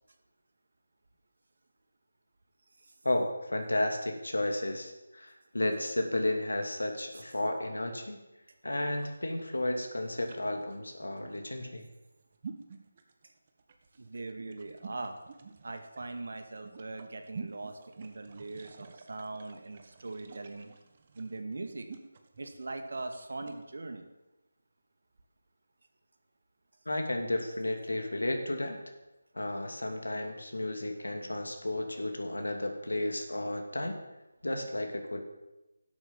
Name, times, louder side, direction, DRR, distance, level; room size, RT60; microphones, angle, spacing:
voice 1, 3.0-8.2 8.6-11.8 26.9-28.8 29.3-34.0 34.4-35.2, left 1 dB, 80° left, 4 dB, 2.6 m, -33 dB
sound 1, 8.9-23.6, right 5 dB, 35° right, 1.7 m, -50 dB
voice 2, 14.0-15.1 15.6-20.7 21.1-21.9 22.4-24.1, right 2 dB, 60° right, 6 dB, 2.1 m, -41 dB
13.0 x 11.5 x 7.3 m, 1.0 s
figure-of-eight pair, 160°, 0 cm